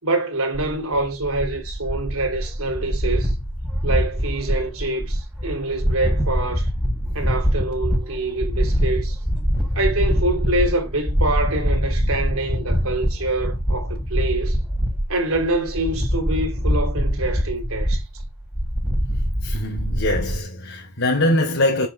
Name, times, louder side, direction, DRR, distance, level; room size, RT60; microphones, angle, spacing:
voice 1, 0.0-3.3 3.8-6.7 7.1-9.2 9.7-14.6 15.1-18.0, right 2 dB, 80° right, 3.6 m, -25 dB
sound 1, 0.5-20.4, equal, 5° right, 4.6 m, -24 dB
voice 2, 19.4-21.9, left 1 dB, 65° left, 3.6 m, -22 dB
7.7 x 6.4 x 7.4 m
head